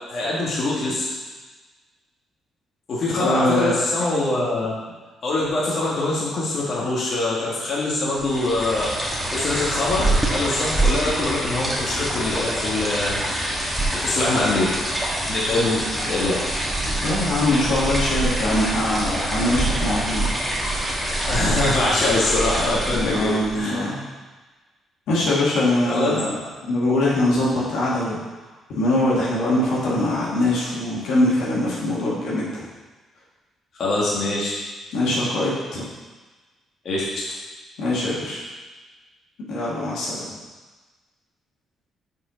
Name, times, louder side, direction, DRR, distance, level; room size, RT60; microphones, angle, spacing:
voice 1, 0.1-1.1 2.9-4.8 5.2-13.2 13.9-14.8 15.3-16.4 21.3-23.9 25.9-26.2 33.8-34.6 36.9-37.1, left 2 dB, 55° left, -6 dB, 1.8 m, -23 dB
voice 2, 3.2-3.7 17.0-20.3 23.0-24.0 25.1-28.2 28.7-32.6 34.9-35.8 37.8-38.5 39.5-40.2, left 1 dB, 85° left, -6 dB, 2.1 m, -22 dB
aigua-Nayara y Paula, 8.2-23.6, right 1 dB, 5° right, 1.8 m, -25 dB
5.7 x 5.1 x 5.1 m, 1.3 s
cardioid pair, 90°, 0 cm